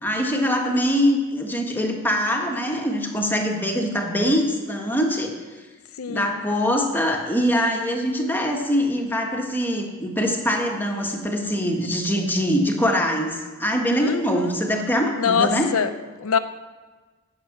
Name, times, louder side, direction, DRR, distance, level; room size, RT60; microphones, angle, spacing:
voice 1, 0.0-5.3 6.1-15.7, equal, 10° left, 1 dB, 1.4 m, -23 dB
voice 2, 6.0-6.4 14.0-14.6 15.2-15.9 16.2-16.4, left 6 dB, 75° left, 10 dB, 0.6 m, -24 dB
16.5 x 6.8 x 6.0 m, 1.3 s
head